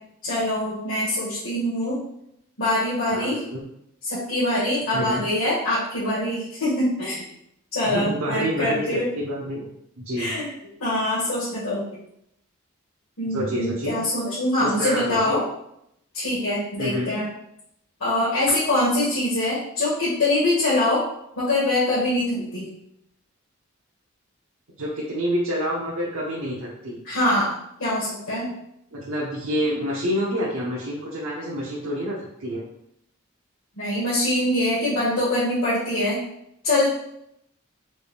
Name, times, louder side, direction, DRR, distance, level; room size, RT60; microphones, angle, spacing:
voice 1, 0.2-2.0 2.6-3.4 4.0-7.2 7.7-9.1 10.2-10.5 10.8-11.8 13.2-15.4 16.1-17.2 18.0-21.0 21.4-22.7 27.0-28.5 33.8-36.2 36.6-36.9, left 1 dB, 85° left, -10 dB, 1.5 m, -24 dB
voice 2, 3.1-3.6 4.9-5.3 7.8-9.6 10.0-10.4 13.3-14.0 14.6-15.4 16.8-17.1 24.8-27.0 28.9-32.6, equal, 85° right, -5 dB, 0.9 m, -28 dB
4.4 x 2.6 x 3.5 m, 0.76 s
head